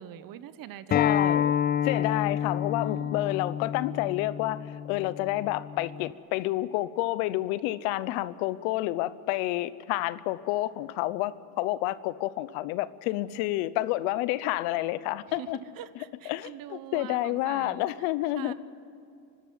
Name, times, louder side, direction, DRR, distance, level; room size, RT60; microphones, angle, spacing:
voice 1, 0.0-1.4 2.7-3.2 15.3-18.1 18.3-18.5, right 12 dB, 55° right, 14 dB, 1.1 m, -44 dB
voice 2, 0.9-1.5 1.8-15.6 16.3-18.5, left 16 dB, 80° left, 16 dB, 0.9 m, -29 dB
Acoustic guitar, 0.9-6.1, left 9 dB, 25° left, 0.4 m, -29 dB
25.5 x 12.5 x 9.4 m, 2.6 s
supercardioid pair, 110°, 40 cm